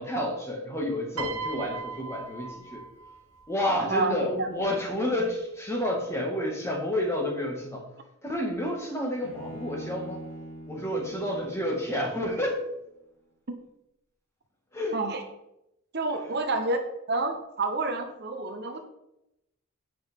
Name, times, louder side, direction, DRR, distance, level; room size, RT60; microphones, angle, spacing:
voice 1, 0.0-2.9 3.5-7.9 8.2-10.2 10.7-12.6 14.7-15.0, left 1 dB, 10° left, 0 dB, 1.8 m, -30 dB
Piano, 1.2-3.5 4.6-4.8, right 4 dB, 90° right, 1.3 m, -38 dB
voice 2, 3.9-4.5 14.9-15.2 15.9-16.8 17.1-18.8, right 3 dB, 50° right, 6 dB, 0.9 m, -28 dB
Bowed string instrument, 9.2-12.5, right 1 dB, 75° left, 3.9 m, -42 dB
9.3 x 8.6 x 3.6 m, 0.85 s
head